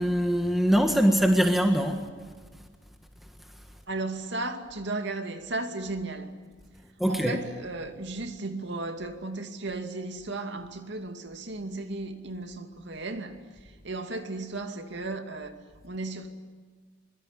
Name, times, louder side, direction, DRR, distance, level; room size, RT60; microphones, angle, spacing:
voice 1, 0.0-2.1 7.0-7.4, equal, ahead, 1.6 m, -23 dB
voice 2, 3.9-6.4 7.1-16.3, right 2 dB, 65° right, 2.5 m, -35 dB
25.5 x 23.0 x 9.9 m
head